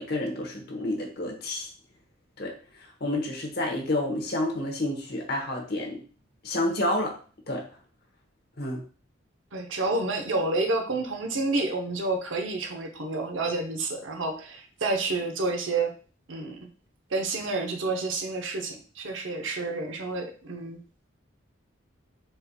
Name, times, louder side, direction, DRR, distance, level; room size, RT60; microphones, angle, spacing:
voice 1, 0.0-1.7 2.4-2.5 3.0-6.0 6.4-7.2 7.5-7.6 8.6-8.8, left 1 dB, 50° left, 1 dB, 1.0 m, -29 dB
voice 2, 9.5-15.9 16.3-16.6 17.1-20.8, right 3 dB, 70° right, 4 dB, 0.8 m, -29 dB
4.5 x 4.1 x 2.2 m, 0.38 s
head